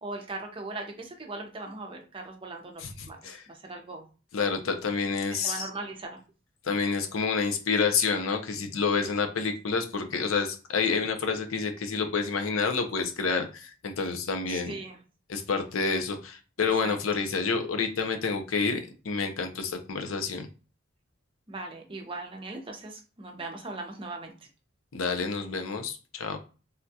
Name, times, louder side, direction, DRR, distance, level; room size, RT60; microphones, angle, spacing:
voice 1, 0.0-2.8 3.1-4.0 5.3-6.2 14.5-15.0 16.6-16.9 21.5-24.3, right 2 dB, 25° right, 2 dB, 0.6 m, -39 dB
voice 2, 2.8-3.4 4.3-5.7 6.6-14.7 15.3-20.5 24.9-26.4, left 5 dB, 90° left, 6 dB, 0.6 m, -29 dB
3.5 x 2.3 x 2.7 m, 0.34 s
head